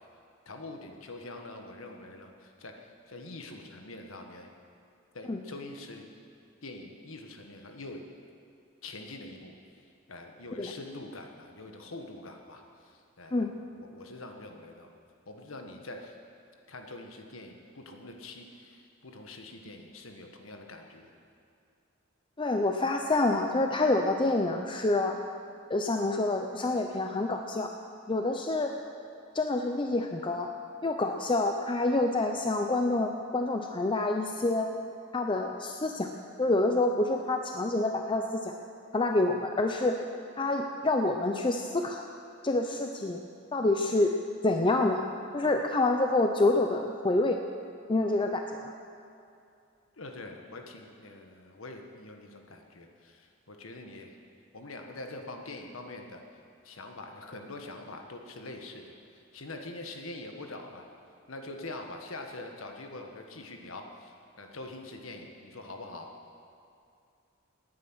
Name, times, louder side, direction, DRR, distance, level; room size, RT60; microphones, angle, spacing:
voice 1, 0.4-4.5 5.1-6.0 6.6-8.0 8.8-9.5 10.1-13.5 13.7-14.9 15.3-16.2 16.7-21.1 50.0-54.1 54.5-56.2 56.6-58.8 59.3-60.9 61.3-66.1, left 2 dB, 80° left, 3 dB, 1.6 m, -44 dB
voice 2, 22.4-25.2 25.7-27.7 28.1-28.7 29.3-30.5 30.8-34.7 35.1-36.1 36.4-38.5 38.9-40.0 40.4-42.0 42.4-43.2 43.5-44.2 44.4-45.0 45.3-47.4 47.9-48.7, left 2 dB, 25° left, 4 dB, 0.6 m, -27 dB
18.0 x 9.6 x 6.3 m, 2.5 s
head